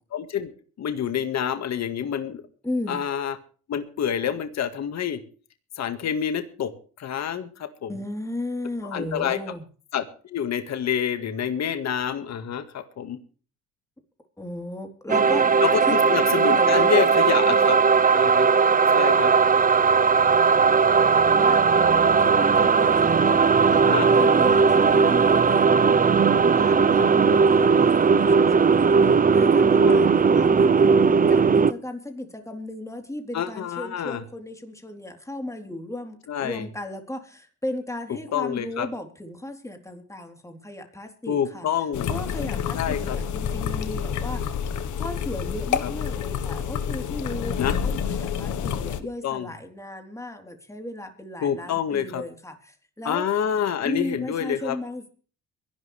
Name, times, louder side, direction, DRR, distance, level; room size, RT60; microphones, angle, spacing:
voice 1, 0.1-0.5 0.8-2.4 2.9-3.4 3.7-5.2 5.8-6.7 7.0-7.9 8.8-9.4 9.9-13.2 15.6-17.8 18.1-18.5 18.9-19.3 23.9-24.1 29.8-30.0 33.3-34.2 36.3-36.7 38.3-38.9 41.3-42.1 42.7-43.2 45.8-45.9 47.6-47.8 49.2-49.5 51.4-52.2 53.0-54.8, left 8 dB, 60° left, 9 dB, 1.9 m, -27 dB
voice 2, 2.6-3.0 7.9-9.6 14.4-16.1 16.5-17.7 21.3-23.8 24.1-25.7 26.6-31.0 31.3-41.7 42.1-44.4 45.0-53.2 53.8-55.0, left 1 dB, 10° left, 4 dB, 3.8 m, -35 dB
sound 1, 15.1-31.7, right 5 dB, 30° right, 0.7 m, -18 dB
sound 2, 41.9-49.0, left 8 dB, 80° left, 1.5 m, -28 dB
23.0 x 12.0 x 3.4 m, 0.40 s
cardioid pair, 90°, 30 cm